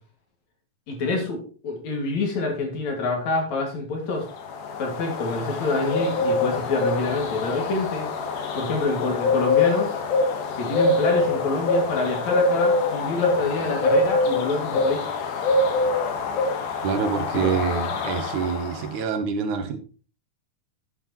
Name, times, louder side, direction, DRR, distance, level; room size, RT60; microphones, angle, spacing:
voice 1, 0.9-4.3 4.8-8.1 8.5-9.9 10.6-15.1 17.3-17.5, left 3 dB, 65° left, 2 dB, 3.3 m, -27 dB
sound 1, 4.3-18.9, left 3 dB, 80° left, 2.9 m, -24 dB
voice 2, 16.8-19.8, right 6 dB, 75° right, 8 dB, 2.4 m, -26 dB
9.5 x 9.4 x 3.0 m, 0.37 s
omnidirectional pair, 3.6 m